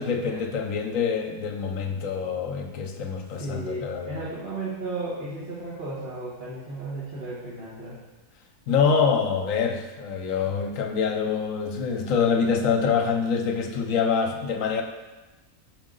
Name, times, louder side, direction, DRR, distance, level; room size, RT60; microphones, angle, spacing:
voice 1, 0.0-4.2 8.7-14.8, left 6 dB, 65° left, 4 dB, 1.0 m, -25 dB
voice 2, 3.3-8.0, right 2 dB, 45° right, -10 dB, 1.4 m, -34 dB
6.2 x 5.1 x 3.8 m, 1.2 s
omnidirectional pair, 1.6 m